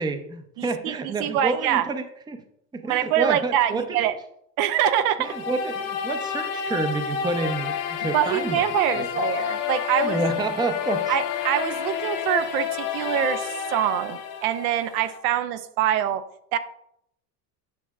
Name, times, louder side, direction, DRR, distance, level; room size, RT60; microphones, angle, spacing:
voice 1, 0.0-2.4 2.7-3.8 5.2-9.1 10.0-11.1, right 3 dB, 10° right, 8 dB, 0.5 m, -29 dB
voice 2, 0.6-1.8 2.9-4.2 4.6-5.3 8.1-10.2 11.1-16.2 16.5-16.6, right 10 dB, 65° right, 11 dB, 0.6 m, -24 dB
sound 1, 5.2-15.2, left 8 dB, 75° left, 1.3 m, -29 dB
9.5 x 6.0 x 2.4 m, 0.74 s
hypercardioid pair, 90°, 48 cm